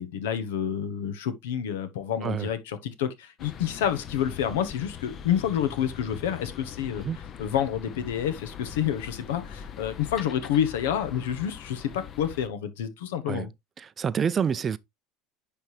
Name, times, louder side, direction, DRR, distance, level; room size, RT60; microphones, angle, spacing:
voice 1, 0.0-7.1 7.4-13.5, left 9 dB, 90° left, 1.0 m, -29 dB
sound 1, 3.4-12.5, left 8 dB, 40° left, 0.6 m, -42 dB
voice 2, 13.8-14.8, right 7 dB, 30° right, 0.4 m, -28 dB
10.0 x 3.4 x 3.1 m
supercardioid pair, 120°, 0 cm